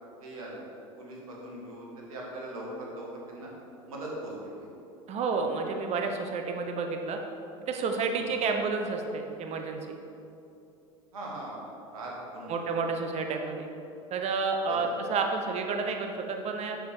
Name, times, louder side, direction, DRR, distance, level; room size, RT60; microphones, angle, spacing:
voice 1, 0.2-0.6 1.0-3.5 3.9-4.7 8.1-8.3 11.1-11.5 11.9-12.6 14.7-15.0, right 1 dB, 80° right, -3 dB, 1.9 m, -40 dB
voice 2, 5.1-7.2 7.7-10.0 12.5-13.7 14.1-16.8, right 4 dB, 40° right, 4 dB, 0.8 m, -30 dB
6.9 x 6.5 x 4.4 m, 2.8 s
hypercardioid pair, 85°, 18 cm